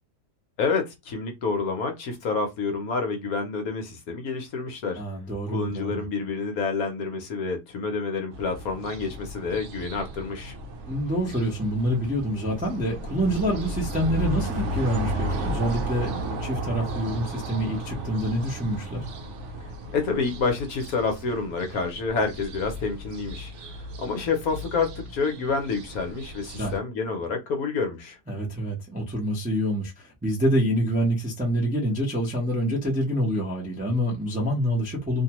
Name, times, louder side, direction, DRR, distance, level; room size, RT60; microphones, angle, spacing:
voice 1, 0.6-5.0 5.5-10.5 19.9-28.2, left 4 dB, 65° left, 1.1 m, -28 dB
voice 2, 5.0-6.0 10.9-19.0 26.6-26.7 28.3-35.2, equal, 10° right, 0.4 m, -26 dB
sound 1, 8.3-26.8, right 1 dB, 60° right, 0.8 m, -34 dB
2.8 x 2.2 x 2.9 m
omnidirectional pair, 1.8 m